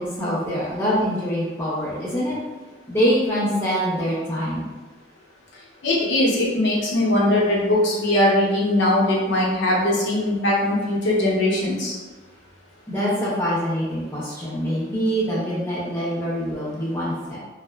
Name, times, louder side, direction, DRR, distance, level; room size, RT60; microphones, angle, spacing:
voice 1, 0.0-2.4 2.9-4.7 12.9-17.4, equal, 10° left, -8 dB, 0.5 m, -24 dB
voice 2, 5.8-12.0, left 1 dB, 70° left, -5 dB, 0.7 m, -20 dB
2.7 x 2.0 x 2.2 m, 1.2 s
head